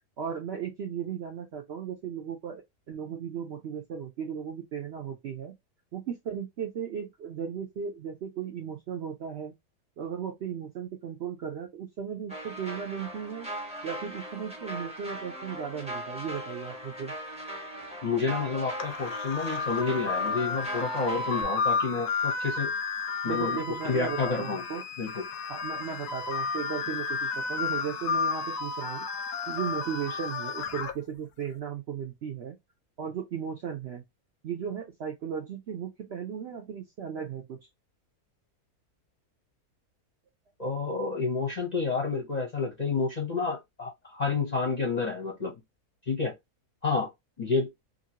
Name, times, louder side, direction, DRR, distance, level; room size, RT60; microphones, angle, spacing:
voice 1, 0.2-2.6 2.9-5.5 5.9-9.5 10.0-13.5 13.8-17.1 23.3-24.8 25.5-29.1 29.5-32.5 33.0-34.0 34.4-37.6, right 7 dB, 65° right, 0.6 m, -36 dB
sound 1, 12.3-21.4, equal, 5° right, 0.6 m, -39 dB
voice 2, 18.0-22.7 23.2-23.6 23.8-24.6 25.0-25.2 40.6-45.5 46.1-46.3 46.8-47.1 47.4-47.7, left 4 dB, 35° left, 0.7 m, -29 dB
sound 2, 18.8-30.9, left 5 dB, 90° left, 1.2 m, -32 dB
2.9 x 2.6 x 2.7 m
omnidirectional pair, 1.7 m